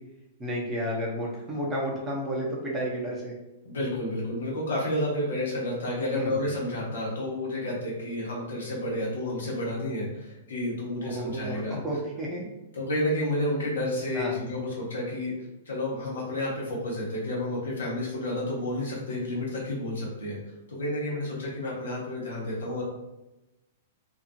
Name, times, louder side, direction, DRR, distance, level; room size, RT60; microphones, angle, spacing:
voice 1, 0.4-3.3 6.1-6.3 11.0-12.4 14.1-14.3, equal, 15° right, -4 dB, 0.7 m, -31 dB
voice 2, 3.6-11.8 12.7-15.3 15.7-20.4 20.7-22.8, left 1 dB, 65° left, -5 dB, 1.0 m, -30 dB
2.6 x 2.5 x 2.5 m, 0.98 s
figure-of-eight pair, 105°, 0 cm